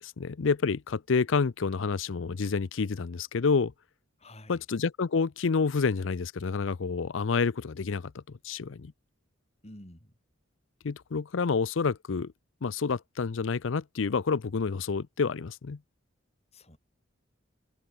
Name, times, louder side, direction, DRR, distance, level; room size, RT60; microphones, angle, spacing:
voice 1, 0.0-3.7 4.5-8.9 10.8-12.3 12.6-15.8, left 5 dB, 75° left, 0.6 m, -28 dB
voice 2, 4.2-4.6 9.6-10.2 16.5-16.8, left 1 dB, 35° left, 5.9 m, -49 dB
head